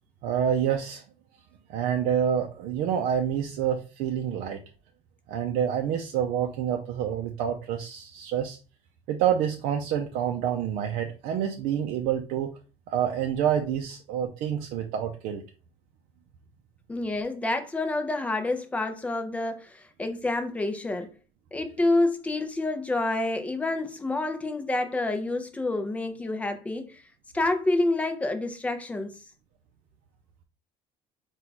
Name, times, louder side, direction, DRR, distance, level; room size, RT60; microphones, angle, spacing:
voice 1, 0.2-1.0 1.7-4.6 5.3-8.6 9.1-12.5 12.9-15.4, right 9 dB, 65° right, 0.5 m, -27 dB
voice 2, 16.9-21.1 21.5-27.0 27.3-29.2, left 2 dB, 10° left, 0.4 m, -28 dB
4.4 x 2.3 x 3.9 m
cardioid pair, 170°, 15 cm